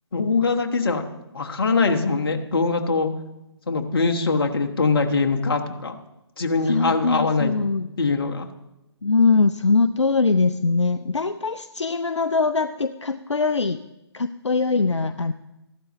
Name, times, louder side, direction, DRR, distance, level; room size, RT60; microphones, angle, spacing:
voice 1, 0.1-1.0 1.3-3.1 3.7-6.0 6.4-7.5 8.0-8.5, left 4 dB, 50° left, 4 dB, 1.3 m, -22 dB
voice 2, 6.7-7.9 9.0-13.8 14.1-15.3, left 4 dB, 80° left, 11 dB, 0.5 m, -22 dB
15.0 x 12.0 x 3.1 m, 0.93 s
figure-of-eight pair, 140°, 15 cm